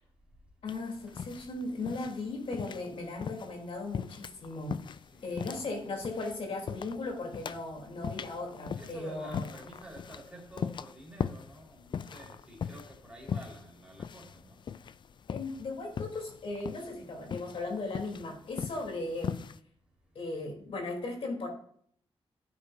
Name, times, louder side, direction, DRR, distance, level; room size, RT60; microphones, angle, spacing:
voice 1, 0.6-9.5 15.3-19.4 20.2-21.5, left 2 dB, 70° left, 1 dB, 3.4 m, -37 dB
sound 1, 0.7-19.6, left 7 dB, 50° left, 0.3 m, -40 dB
voice 2, 8.8-14.6, right 1 dB, 10° right, -3 dB, 4.4 m, -49 dB
15.5 x 8.5 x 2.7 m, 0.62 s
wide cardioid pair, 145°, 10 cm